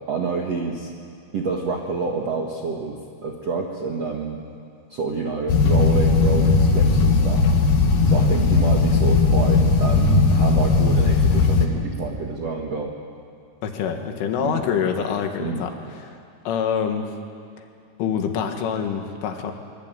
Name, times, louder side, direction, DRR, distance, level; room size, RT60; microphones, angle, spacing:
voice 1, 0.1-0.9 1.3-4.4 4.9-7.5 8.0-12.9 14.4-14.6 15.4-15.7, right 4 dB, 65° right, 0 dB, 1.6 m, -28 dB
sound 1, 5.5-11.7, left 4 dB, 60° left, 2.6 m, -17 dB
voice 2, 13.6-16.2 16.5-17.1 18.0-19.5, left 7 dB, 80° left, 4 dB, 4.3 m, -26 dB
24.0 x 23.0 x 9.1 m, 2.3 s
omnidirectional pair, 5.6 m